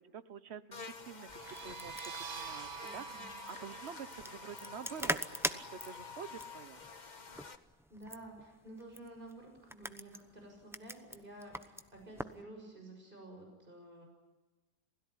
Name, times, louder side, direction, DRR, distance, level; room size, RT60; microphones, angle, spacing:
voice 1, 0.0-3.1 3.5-6.8, right 7 dB, 45° right, 14 dB, 1.0 m, -48 dB
Buzz, 0.7-7.5, left 5 dB, 30° left, 1.3 m, -49 dB
sound 1, 1.2-6.7, right 7 dB, 80° right, 2.4 m, -49 dB
sound 2, 1.3-12.4, equal, ahead, 0.6 m, -43 dB
voice 2, 2.8-3.3 7.9-14.0, right 1 dB, 30° right, 2 dB, 6.8 m, -52 dB
27.5 x 17.5 x 10.0 m, 1.2 s
omnidirectional pair, 1.8 m